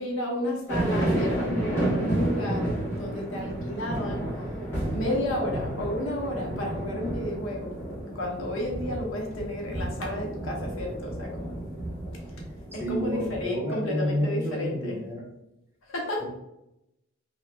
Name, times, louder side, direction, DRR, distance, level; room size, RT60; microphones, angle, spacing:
voice 1, 0.0-2.7 3.0-4.3 4.9-7.7 8.1-11.6 12.7-15.0 15.9-16.2, left 1 dB, 75° left, -1 dB, 0.8 m, -32 dB
sound 1, 0.7-13.4, right 1 dB, 10° left, 1.2 m, -31 dB
voice 2, 12.7-15.3 16.2-16.3, left 1 dB, 10° right, -2 dB, 0.6 m, -30 dB
2.9 x 2.3 x 3.2 m, 0.85 s
head